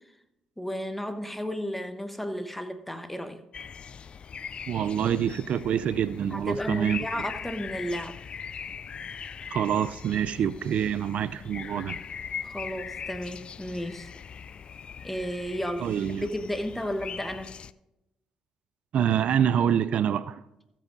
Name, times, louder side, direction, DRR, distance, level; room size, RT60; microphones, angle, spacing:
voice 1, 0.6-3.4 6.3-8.2 12.4-14.1 15.0-15.9 16.2-17.5, equal, 5° left, 1.1 m, -33 dB
sound 1, 3.5-17.7, left 7 dB, 50° left, 0.3 m, -40 dB
voice 2, 4.7-7.2 9.5-12.0 15.8-16.3 18.9-20.4, right 9 dB, 65° right, 0.4 m, -26 dB
14.0 x 7.4 x 3.9 m
supercardioid pair, 60°, 2 cm